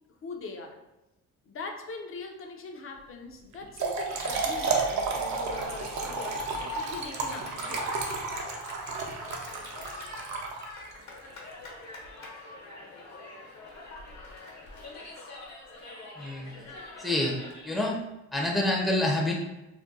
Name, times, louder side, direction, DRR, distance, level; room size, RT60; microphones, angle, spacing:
voice 1, 0.2-0.8 1.5-8.0, left 3 dB, 45° left, 3 dB, 0.6 m, -42 dB
Trickle dribble / Fill (with liquid), 3.5-11.0, right 4 dB, 70° right, 0.6 m, -32 dB
Cheering, 4.1-17.7, left 3 dB, 65° left, 1.0 m, -44 dB
voice 2, 16.2-16.6 17.0-17.4 17.6-18.0 18.3-19.3, left 1 dB, ahead, -2 dB, 0.6 m, -27 dB
2.5 x 2.1 x 3.8 m, 0.98 s
cardioid pair, 90°, 30 cm